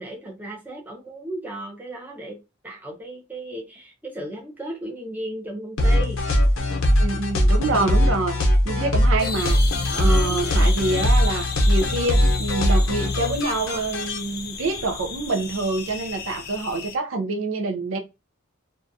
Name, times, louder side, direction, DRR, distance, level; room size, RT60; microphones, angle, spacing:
voice 1, 0.0-2.4 2.6-6.2 7.7-8.0 9.8-10.7, right 1 dB, 10° right, 0.6 m, -35 dB
sound 1, 5.8-14.2, equal, 85° left, 0.7 m, -20 dB
voice 2, 7.0-9.6 9.9-18.0, right 3 dB, 80° right, 0.5 m, -26 dB
sound 2, 9.2-17.0, left 5 dB, 45° left, 0.4 m, -34 dB
2.4 x 2.2 x 2.6 m
head